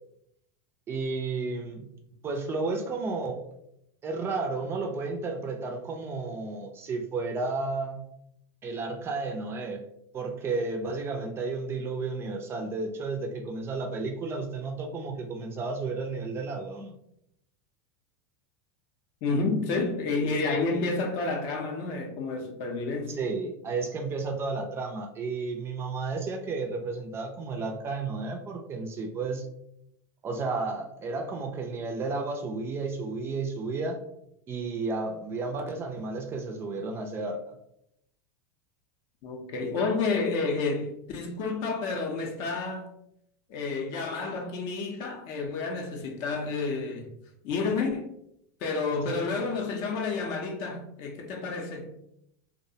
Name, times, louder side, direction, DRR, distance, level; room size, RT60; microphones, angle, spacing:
voice 1, 0.9-1.9 2.2-3.4 4.0-8.1 8.6-9.8 10.1-16.9 23.1-29.5 30.2-34.0 34.5-37.6, right 3 dB, 25° right, 0.4 m, -32 dB
voice 2, 19.2-23.2 39.2-42.9 43.5-47.1 47.4-48.1 48.6-51.9, left 3 dB, 50° left, 0.5 m, -30 dB
2.3 x 2.0 x 2.6 m
supercardioid pair, 125°, 10 cm